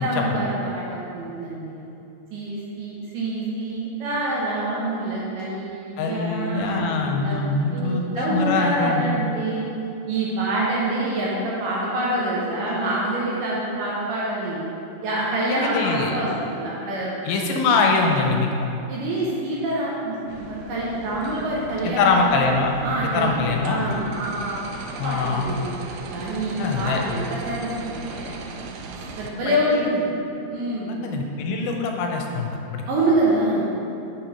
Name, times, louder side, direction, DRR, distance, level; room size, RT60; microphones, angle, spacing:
voice 1, 0.0-1.8 2.3-9.7 10.1-14.6 15.0-17.2 18.9-22.2 22.8-25.7 26.1-28.4 28.9-30.1 30.4-31.0 32.9-33.9, right 1 dB, 75° right, -6 dB, 2.2 m, -26 dB
voice 2, 6.0-9.1 15.5-16.2 17.3-18.7 21.8-22.7 23.1-23.8 25.0-25.5 26.6-27.0 29.5-29.6 31.0-32.8, left 4 dB, 90° left, 2 dB, 2.6 m, -23 dB
sound 1, 20.3-29.3, right 3 dB, 90° right, 1.8 m, -38 dB
6.8 x 4.5 x 5.1 m, 2.8 s
omnidirectional pair, 4.4 m